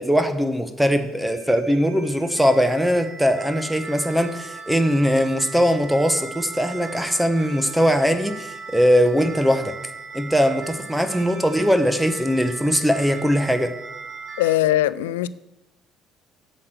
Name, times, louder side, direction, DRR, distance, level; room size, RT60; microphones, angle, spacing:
voice 1, 0.0-9.7 10.1-13.7, equal, 5° right, 1.0 m, -20 dB
sound 1, 0.8-14.6, right 4 dB, 40° right, 1.6 m, -38 dB
voice 2, 14.4-15.3, left 14 dB, 85° left, 0.3 m, -20 dB
7.6 x 6.3 x 7.6 m
hypercardioid pair, 65°, 0 cm